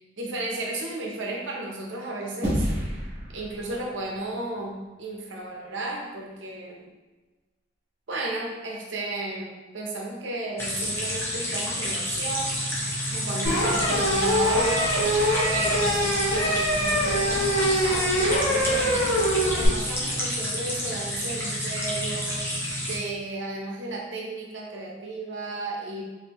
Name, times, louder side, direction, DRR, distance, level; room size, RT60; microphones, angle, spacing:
voice 1, 0.0-3.0 3.3-6.9 8.1-12.6 13.1-15.2 15.5-19.1 19.4-26.0, right 2 dB, 85° right, -1 dB, 0.7 m, -34 dB
sound 1, 2.4-5.0, equal, 40° right, 1.2 m, -31 dB
sound 2, 10.6-23.0, equal, 15° left, 0.6 m, -30 dB
sound 3, 13.5-19.7, equal, 90° left, 1.1 m, -24 dB
3.5 x 2.7 x 2.9 m, 1.2 s
head